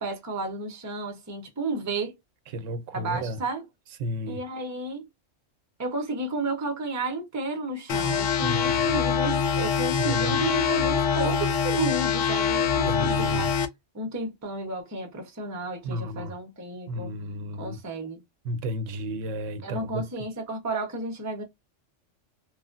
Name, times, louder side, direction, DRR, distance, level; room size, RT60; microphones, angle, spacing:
voice 1, 0.0-2.2 2.9-3.6 4.3-5.1 5.8-13.5 13.9-17.1 17.6-18.2 19.6-21.4, right 2 dB, 20° right, 0.5 m, -32 dB
voice 2, 2.5-3.4 4.0-4.4 8.4-8.9 9.6-10.5 12.9-13.5 15.8-16.3 16.9-17.8 18.4-20.1, equal, 80° right, 0.9 m, -32 dB
sound 1, 7.9-13.7, left 7 dB, 80° left, 1.0 m, -24 dB
3.1 x 2.3 x 2.4 m
omnidirectional pair, 1.3 m